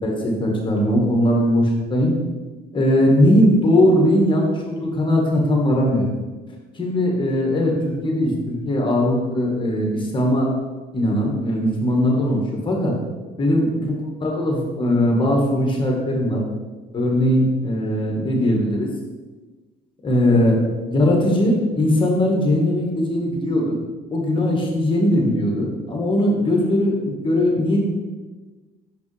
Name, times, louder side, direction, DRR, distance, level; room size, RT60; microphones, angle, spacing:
voice 1, 0.0-2.1 2.7-6.1 6.7-10.5 10.9-12.9 13.4-13.9 14.2-16.4 16.9-18.9 20.0-20.6 20.9-23.8 24.1-27.8, left 1 dB, 30° left, 0 dB, 1.4 m, -19 dB
6.1 x 5.2 x 3.2 m, 1.3 s
cardioid pair, 110°, 17 cm